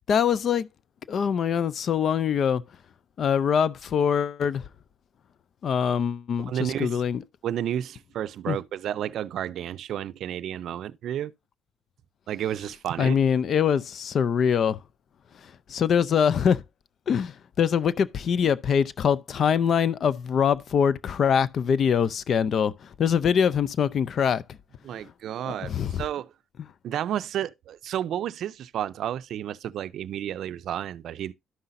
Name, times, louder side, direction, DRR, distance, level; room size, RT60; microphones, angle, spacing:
voice 1, 0.1-0.7 1.1-2.6 3.2-4.6 5.6-7.2 8.5-8.6 13.0-14.8 15.7-16.6 17.1-22.7 23.0-24.4 25.5-26.0, left 7 dB, 60° left, 0.5 m, -23 dB
voice 2, 6.4-7.0 7.4-11.3 12.3-13.2 24.8-26.3 26.8-31.3, right 10 dB, 75° right, 0.4 m, -31 dB
12.5 x 5.6 x 2.6 m
cardioid pair, 90°, 0 cm